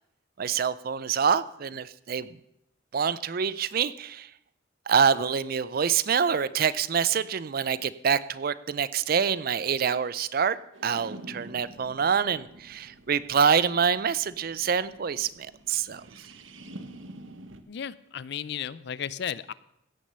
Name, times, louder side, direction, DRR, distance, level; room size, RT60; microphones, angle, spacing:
voice 1, 0.4-2.3 2.9-4.3 4.9-10.6 10.8-16.0, right 7 dB, 45° right, 17 dB, 0.4 m, -26 dB
sound 1, 10.7-17.6, right 1 dB, 75° right, 1.0 m, -47 dB
voice 2, 17.7-19.5, left 8 dB, 55° left, 19 dB, 0.4 m, -34 dB
16.0 x 6.3 x 6.7 m, 0.79 s
head